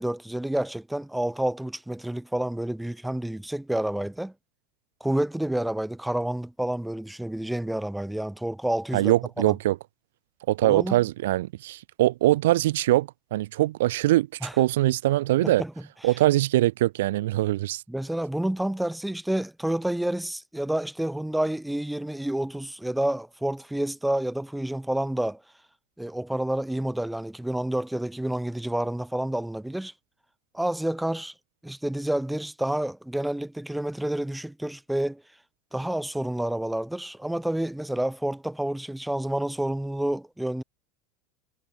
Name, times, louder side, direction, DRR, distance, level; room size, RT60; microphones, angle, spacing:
voice 1, 0.0-4.3 5.0-9.6 10.6-11.0 14.4-14.5 15.4-15.7 17.9-25.4 26.0-29.9 30.5-31.3 31.6-35.2 35.7-40.6, right 1 dB, 5° right, 1.9 m, -29 dB
voice 2, 8.9-9.8 10.5-15.6 16.0-17.8, right 16 dB, 90° right, 0.5 m, -23 dB
supercardioid pair, 145°, 0 cm